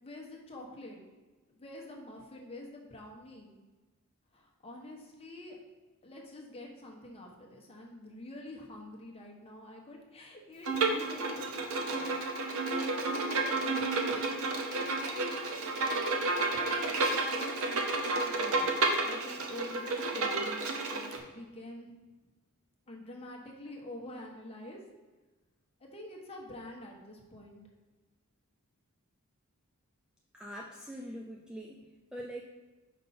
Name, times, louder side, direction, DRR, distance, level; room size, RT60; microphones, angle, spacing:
voice 1, 0.0-1.0 1.5-3.5 4.3-5.6 6.0-11.6 12.4-14.5 15.0-15.2 16.3-18.7 19.1-21.9 22.9-24.8 25.8-27.6, left 1 dB, 25° left, -1 dB, 1.0 m, -46 dB
Bowed string instrument, 10.6-21.2, right 3 dB, 65° right, 0.8 m, -31 dB
voice 2, 30.3-32.4, equal, 5° right, -1 dB, 0.3 m, -43 dB
5.4 x 5.2 x 4.2 m, 1.2 s
head